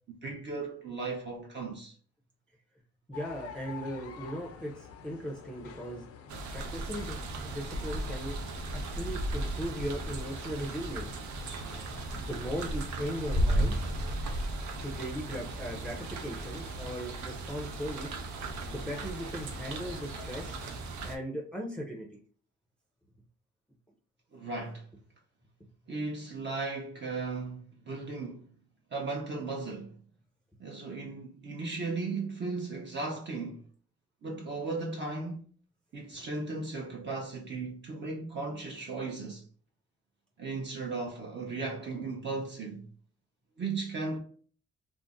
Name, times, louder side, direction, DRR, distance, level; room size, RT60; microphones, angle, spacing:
voice 1, 0.2-1.9 24.3-24.9 25.9-28.4 28.9-29.9 30.6-33.7 34.2-35.4 35.9-39.4 40.4-42.9 43.6-44.2, right 3 dB, 35° right, 0.7 m, -36 dB
sound 1, 3.1-20.8, left 6 dB, 55° left, 0.5 m, -49 dB
voice 2, 3.1-6.0 6.5-8.4 8.7-11.1 12.2-13.8 14.8-18.1 18.7-20.6 21.0-22.1 28.2-28.3, equal, 5° left, 0.6 m, -38 dB
sound 2, 6.3-21.2, right 1 dB, 70° right, 0.6 m, -35 dB
2.5 x 2.0 x 3.5 m
cardioid pair, 90°, 30 cm